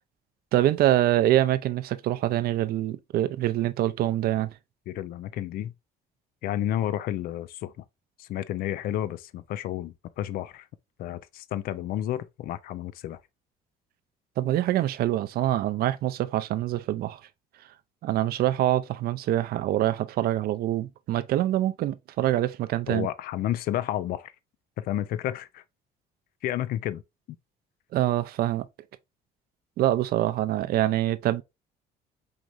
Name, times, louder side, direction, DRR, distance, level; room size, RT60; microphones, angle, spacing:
voice 1, 0.5-4.5 14.4-17.2 18.0-23.1 27.9-28.7 29.8-31.4, right 13 dB, 65° right, 0.5 m, -25 dB
voice 2, 4.9-5.7 6.4-7.8 8.2-10.7 11.0-13.2 22.9-24.3 24.8-25.6 26.4-27.0, left 12 dB, 60° left, 0.4 m, -31 dB
4.8 x 3.0 x 2.5 m
cardioid pair, 110°, 17 cm